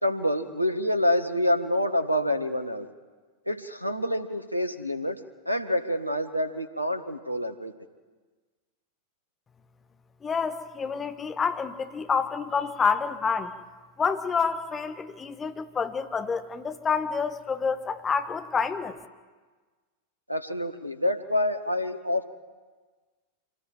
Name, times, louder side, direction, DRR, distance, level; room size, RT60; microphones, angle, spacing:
voice 1, 0.0-2.9 3.5-5.2 5.4-7.7 20.3-22.3, left 1 dB, 90° right, 10 dB, 1.6 m, -27 dB
voice 2, 10.2-13.5 14.0-19.0, left 5 dB, 20° left, 8 dB, 1.6 m, -28 dB
26.5 x 19.0 x 8.9 m, 1.4 s
figure-of-eight pair, 90°, 0 cm